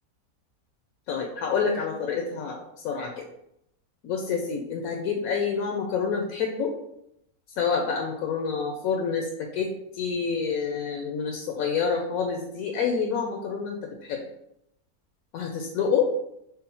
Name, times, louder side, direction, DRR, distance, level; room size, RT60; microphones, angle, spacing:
voice 1, 1.1-3.2 4.0-6.7 7.6-14.3 15.3-16.1, left 6 dB, 75° left, 2 dB, 1.0 m, -28 dB
5.3 x 2.0 x 4.2 m, 0.78 s
omnidirectional pair, 1.6 m